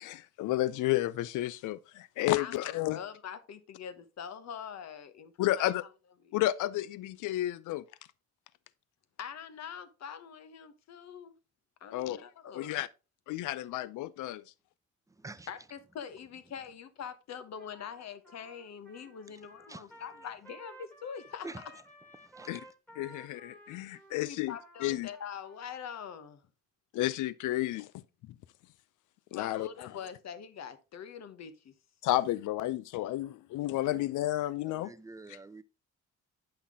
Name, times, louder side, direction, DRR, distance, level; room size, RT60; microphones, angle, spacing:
voice 1, 0.0-3.0 5.4-5.8 6.3-7.8 11.9-12.2 12.5-12.9 13.3-14.4 22.5-22.6 23.0-24.6 24.8-25.1 26.9-27.9 29.3-29.7 32.0-34.9, left 15 dB, 80° left, 0.5 m, -31 dB
voice 2, 2.4-5.7 6.2-6.4 9.2-11.3 11.8-12.8 15.5-21.5 24.2-26.4 29.3-31.7 33.7-34.0, left 7 dB, 60° left, 1.1 m, -44 dB
voice 3, 15.1-15.5 19.7-20.0 21.4-21.7 22.2-22.7 33.9-34.1 34.6-35.6, right 3 dB, 10° right, 0.5 m, -47 dB
Trumpet, 17.5-25.8, right 1 dB, 5° left, 1.7 m, -55 dB
8.6 x 5.7 x 3.6 m
cardioid pair, 90°, 30 cm